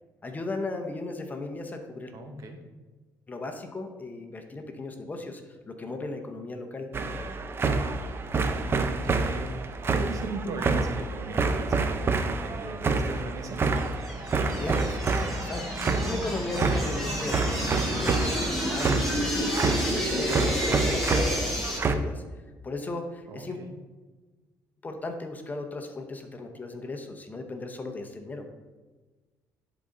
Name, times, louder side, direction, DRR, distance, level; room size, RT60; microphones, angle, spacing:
voice 1, 0.2-2.1 3.3-5.4 5.7-6.9 14.4-22.2 22.6-23.6 24.8-28.4, left 2 dB, 25° left, 5 dB, 0.8 m, -36 dB
voice 2, 2.1-2.6 8.6-13.7 23.3-23.7, right 3 dB, 55° right, 5 dB, 1.1 m, -38 dB
sound 1, 6.9-22.0, right 3 dB, 35° right, 0.6 m, -28 dB
sound 2, 13.8-21.8, equal, 5° left, 2.4 m, -30 dB
11.0 x 4.0 x 3.8 m, 1.3 s
cardioid pair, 105°, 7 cm